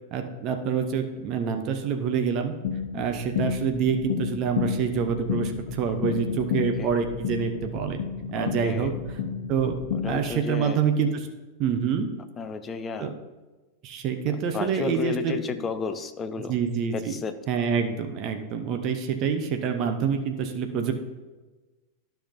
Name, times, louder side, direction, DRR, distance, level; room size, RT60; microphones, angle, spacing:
voice 1, 0.1-2.5 2.9-8.0 8.3-8.9 9.5-9.8 10.0-11.3 11.6-12.1 13.0-13.1 13.8-15.3 16.5-17.1 17.5-20.9, right 7 dB, 40° right, 6 dB, 0.9 m, -26 dB
sound 1, 2.6-10.4, left 6 dB, 55° left, 1.1 m, -31 dB
voice 2, 8.4-9.0 9.9-10.8 12.4-13.1 14.3-16.6 16.9-17.4, left 5 dB, 20° left, 10 dB, 0.6 m, -33 dB
12.5 x 5.8 x 2.7 m, 1.2 s
figure-of-eight pair, 90°, 0 cm